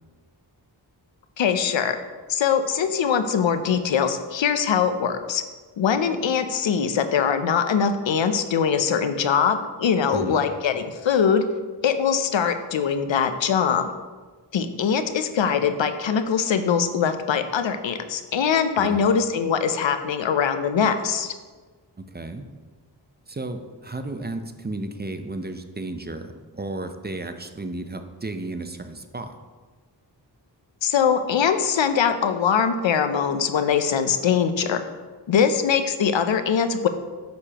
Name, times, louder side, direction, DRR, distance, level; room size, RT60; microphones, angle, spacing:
voice 1, 1.4-2.0 2.3-5.4 5.8-11.5 11.8-13.9 14.5-21.3 30.8-34.8 35.3-36.9, left 7 dB, 85° left, 9 dB, 0.7 m, -22 dB
voice 2, 10.1-10.4 18.8-19.0 22.0-22.5 23.3-29.3, right 2 dB, 25° right, 8 dB, 0.6 m, -33 dB
9.4 x 6.7 x 2.9 m, 1.4 s
cardioid pair, 55°, 44 cm